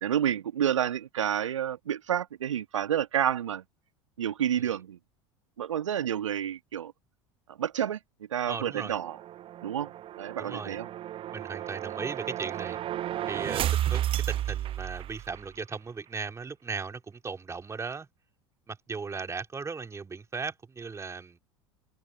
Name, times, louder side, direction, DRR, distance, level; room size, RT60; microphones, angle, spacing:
voice 1, 0.0-3.6 4.2-5.0 5.6-6.9 7.5-8.0 8.3-9.2 9.6-9.9 10.2-10.9, right 10 dB, 75° right, 1.6 m, -29 dB
voice 2, 8.5-9.0 10.4-10.8 11.3-12.8 13.3-18.1 18.7-21.4, right 4 dB, 20° right, 3.8 m, -37 dB
sound 1, 8.7-15.5, right 12 dB, 35° right, 0.8 m, -33 dB
figure-of-eight pair, 75°, 16 cm